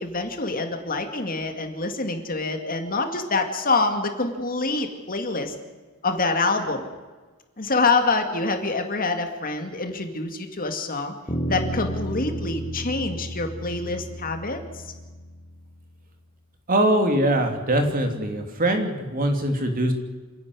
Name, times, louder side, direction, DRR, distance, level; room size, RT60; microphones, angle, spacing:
voice 1, 0.0-5.5 6.0-6.8 7.6-11.1 11.5-14.6, left 3 dB, 45° left, 6 dB, 2.3 m, -26 dB
Bass guitar, 11.3-15.7, right 1 dB, 25° left, 2.9 m, -32 dB
voice 2, 16.7-19.9, right 1 dB, 40° right, 5 dB, 2.9 m, -22 dB
27.5 x 11.0 x 9.8 m, 1.3 s
head